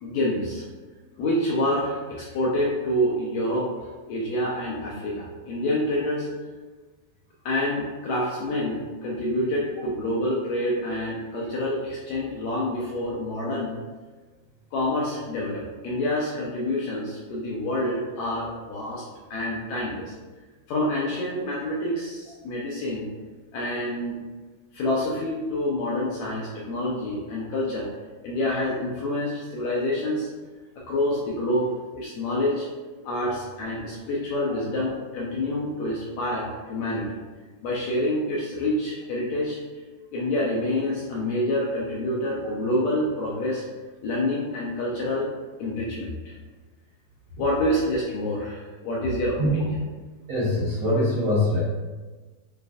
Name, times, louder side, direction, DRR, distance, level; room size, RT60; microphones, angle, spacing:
voice 1, 0.0-0.7 1.2-6.3 7.5-13.8 14.7-19.1 19.3-20.1 20.7-23.1 23.5-24.2 24.7-27.9 28.2-30.3 30.8-31.7 31.9-32.7 33.0-37.2 37.6-39.6 40.1-43.7 44.0-45.3 45.6-46.4 47.4-49.8, left 1 dB, 85° left, -4 dB, 1.7 m, -27 dB
voice 2, 50.3-51.6, left 1 dB, 85° right, -9 dB, 1.1 m, -23 dB
6.9 x 2.5 x 2.4 m, 1.3 s
omnidirectional pair, 3.8 m